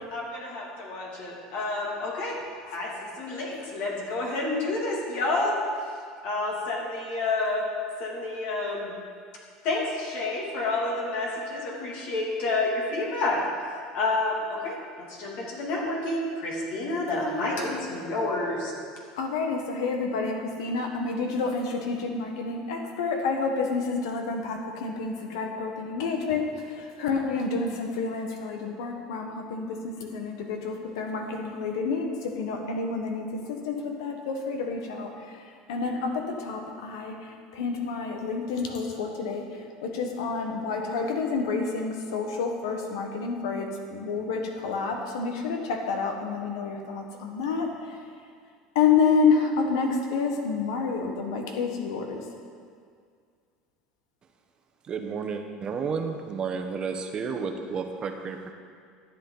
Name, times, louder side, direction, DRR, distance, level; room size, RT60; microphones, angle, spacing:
voice 1, 0.1-2.4 2.7-5.6 6.2-7.6 8.0-8.9 9.6-13.4 13.9-18.7, left 2 dB, 65° left, -2 dB, 2.8 m, -29 dB
voice 2, 19.2-26.5 27.0-35.1 35.7-37.1 37.5-39.4 39.8-47.7 48.7-52.2, left 4 dB, 90° left, 3 dB, 1.4 m, -28 dB
voice 3, 54.9-58.5, right 5 dB, 35° right, 5 dB, 1.0 m, -32 dB
12.5 x 8.4 x 4.0 m, 2.1 s
supercardioid pair, 115°, 3 cm